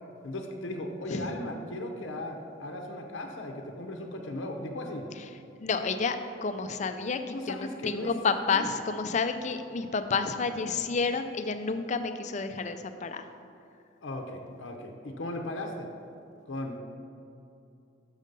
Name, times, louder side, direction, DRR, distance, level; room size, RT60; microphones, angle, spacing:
voice 1, 0.2-5.0 7.3-8.1 8.5-8.7 14.0-15.9 16.5-16.8, left 1 dB, 75° left, 3 dB, 0.7 m, -37 dB
voice 2, 5.6-13.2, left 4 dB, 35° left, 9 dB, 0.4 m, -30 dB
6.6 x 6.4 x 5.2 m, 2.7 s
head